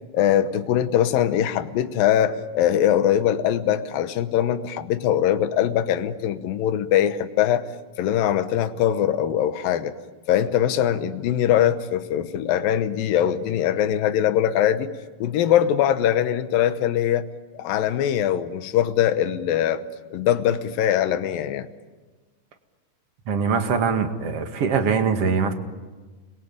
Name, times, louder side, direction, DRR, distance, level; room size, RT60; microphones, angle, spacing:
voice 1, 0.1-7.7 8.0-9.9 10.3-14.9 15.2-17.3 17.6-19.8 20.1-21.7, left 10 dB, 85° left, 10 dB, 2.8 m, -22 dB
voice 2, 23.3-25.5, right 5 dB, 50° right, 6 dB, 2.7 m, -22 dB
29.5 x 22.0 x 8.9 m, 1.3 s
omnidirectional pair, 4.0 m